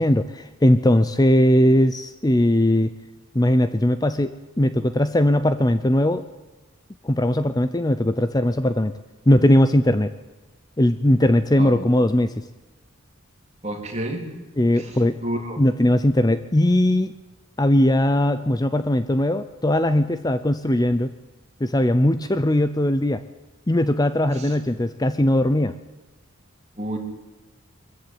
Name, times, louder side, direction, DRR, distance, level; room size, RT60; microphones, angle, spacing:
voice 1, 0.0-2.9 3.3-6.3 7.0-8.9 9.3-10.1 10.8-12.3 14.6-15.2 15.6-17.2 17.6-21.1 21.6-23.2 23.7-25.8, left 1 dB, 20° left, 12 dB, 0.6 m, -19 dB
voice 2, 13.6-14.3 14.8-14.9 15.2-15.6 24.3-24.5 26.8-27.0, right 1 dB, 30° right, 2 dB, 3.6 m, -29 dB
23.0 x 14.5 x 9.1 m, 1.1 s
head